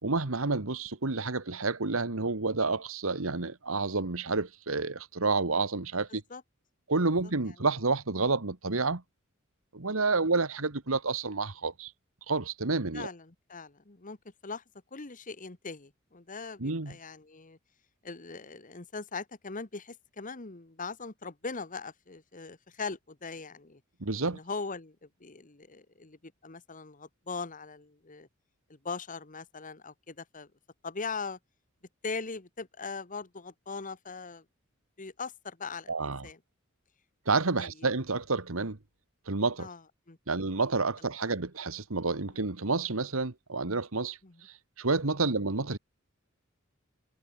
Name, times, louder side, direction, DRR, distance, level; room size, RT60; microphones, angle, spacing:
voice 1, 0.0-6.2 6.9-9.0 9.7-11.9 12.3-13.1 16.6-17.0 24.0-24.4 35.9-36.3 37.2-38.8 39.3-39.7 40.3-45.8, right 3 dB, 75° right, 1.6 m, -29 dB
voice 2, 6.1-6.4 10.1-10.2 12.9-14.2 14.4-14.6 14.9-17.6 18.0-23.8 24.3-28.3 28.7-30.5 30.8-31.4 32.0-34.4 35.0-36.4 37.6-37.7 39.6-39.8 40.1-40.2 44.2-44.4, left 4 dB, 40° left, 1.4 m, -40 dB
head